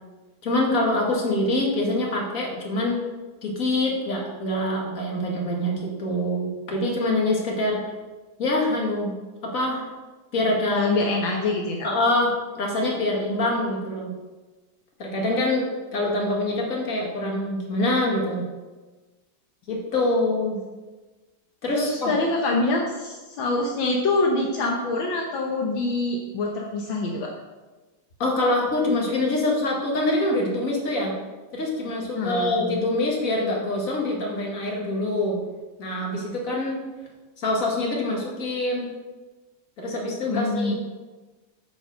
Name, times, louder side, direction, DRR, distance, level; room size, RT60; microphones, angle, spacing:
voice 1, 0.4-3.0 3.4-7.8 8.4-9.1 9.4-9.9 10.3-10.9 11.8-14.1 15.0-18.4 19.7-20.6 21.6-22.1 28.2-31.1 31.5-35.4 35.8-36.8 37.4-38.9 39.8-40.7, left 1 dB, 45° left, -1 dB, 2.3 m, -25 dB
voice 2, 10.7-11.9 21.7-27.3 32.2-32.9 40.3-40.7, left 2 dB, 75° left, 0 dB, 1.8 m, -25 dB
9.7 x 5.2 x 6.4 m, 1.2 s
omnidirectional pair, 2.2 m